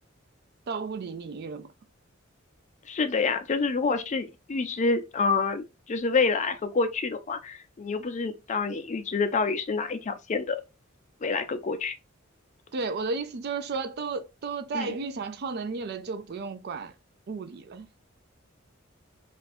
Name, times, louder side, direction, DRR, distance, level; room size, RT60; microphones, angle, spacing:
voice 1, 0.7-1.7 12.7-16.9 17.3-17.9, right 4 dB, 50° right, 0.4 m, -33 dB
voice 2, 2.9-10.6 11.2-11.9 14.7-14.9, left 4 dB, 35° left, 0.4 m, -27 dB
2.5 x 2.3 x 4.0 m
head